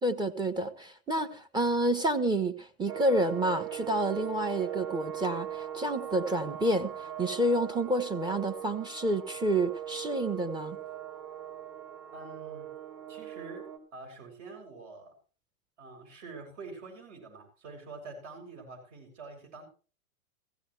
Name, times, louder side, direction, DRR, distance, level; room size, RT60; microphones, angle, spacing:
voice 1, 0.0-10.8, right 1 dB, 10° right, 1.0 m, -29 dB
sound 1, 2.9-13.8, right 10 dB, 35° right, 3.7 m, -40 dB
voice 2, 12.1-12.7 13.1-15.1 15.8-19.6, right 3 dB, 55° right, 7.7 m, -46 dB
16.0 x 15.5 x 3.3 m
hypercardioid pair, 120°, 45 cm